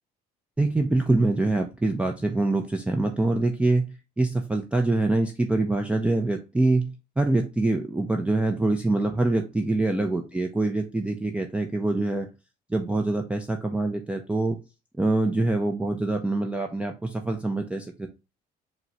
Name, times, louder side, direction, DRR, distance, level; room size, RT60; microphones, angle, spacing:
voice 1, 0.6-3.8 4.2-6.8 7.2-12.3 12.7-14.6 15.0-18.1, right 2 dB, 5° right, 3 dB, 0.4 m, -24 dB
4.4 x 2.1 x 3.9 m, 0.28 s
cardioid pair, 110°, 17 cm